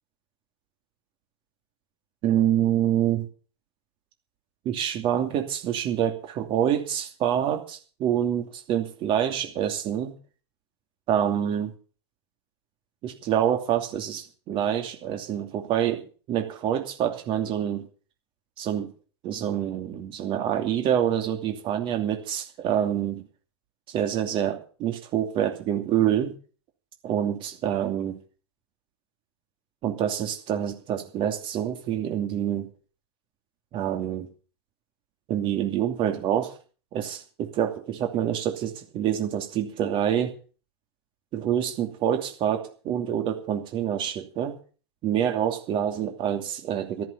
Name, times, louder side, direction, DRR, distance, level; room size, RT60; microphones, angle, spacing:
voice 1, 2.2-3.3 4.6-10.1 11.1-11.7 13.0-17.8 18.6-18.9 19.2-23.2 23.9-26.3 27.0-28.2 29.8-32.7 33.7-34.3 35.3-36.5 36.9-40.3 41.3-44.5 45.0-47.0, right 10 dB, 35° right, 4 dB, 2.7 m, -26 dB
14.0 x 11.0 x 6.9 m, 0.39 s
hypercardioid pair, 115°, 15 cm